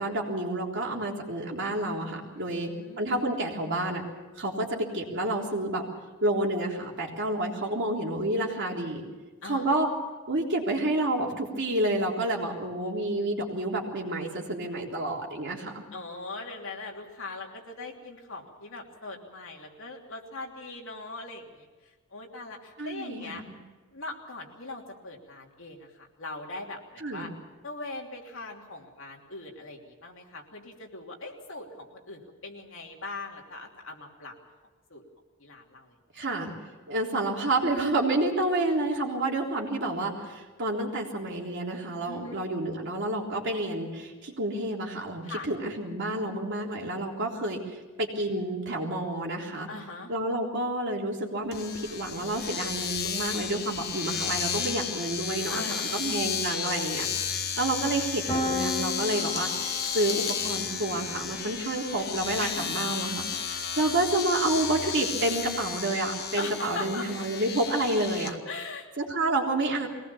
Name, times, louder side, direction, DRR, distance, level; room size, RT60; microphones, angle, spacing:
voice 1, 0.0-2.7 3.0-4.0 4.4-5.8 6.2-9.0 9.4-9.9 10.3-15.8 22.8-23.4 27.0-27.3 36.2-36.5 36.9-49.7 50.1-57.1 57.6-68.4 69.0-69.9, right 2 dB, 55° right, -1 dB, 3.6 m, -29 dB
voice 2, 2.3-3.2 9.4-9.7 15.9-21.7 22.1-23.4 23.9-27.3 27.6-34.3 34.9-35.0 35.4-36.3 42.0-42.5 45.2-45.5 49.7-50.1 55.5-56.1 62.4-62.8 66.4-67.1 68.4-68.9, left 3 dB, 60° left, 0 dB, 3.1 m, -40 dB
Domestic sounds home sounds, 51.5-68.3, left 7 dB, 45° left, 1.4 m, -33 dB
Piano, 58.3-64.1, left 2 dB, 15° left, 7.7 m, -37 dB
22.5 x 18.5 x 7.1 m, 1.3 s
head